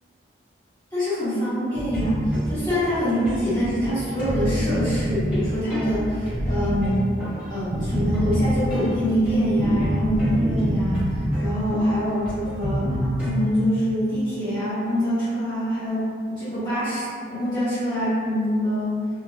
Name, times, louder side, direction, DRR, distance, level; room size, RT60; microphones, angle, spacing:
voice 1, 0.9-7.1 7.5-19.0, equal, 20° left, -16 dB, 1.2 m, -25 dB
sound 1, 1.7-13.3, equal, 5° right, 0.8 m, -27 dB
2.4 x 2.1 x 3.0 m, 2.2 s
head